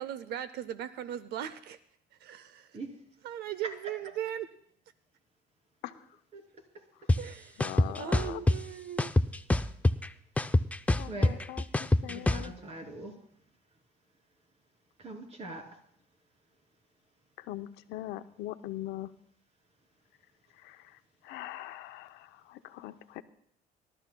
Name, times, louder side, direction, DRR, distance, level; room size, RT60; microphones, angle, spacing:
voice 1, 0.0-1.8 2.2-2.8 3.2-4.5 7.2-9.1, right 10 dB, 75° right, 14 dB, 0.6 m, -38 dB
sound 1, 7.1-7.2 7.6-8.6 9.0-10.1 10.4-12.4, left 2 dB, 10° left, 0.4 m, -24 dB
voice 2, 7.6-8.4 11.0-12.5 17.4-19.1 20.6-20.8 21.2-23.2, left 14 dB, 85° left, 10 dB, 0.7 m, -41 dB
voice 3, 11.1-11.4 12.1-13.1 15.0-15.8, right 2 dB, 40° right, 3 dB, 2.9 m, -42 dB
24.5 x 12.5 x 2.2 m, 0.66 s
cardioid pair, 110°, 17 cm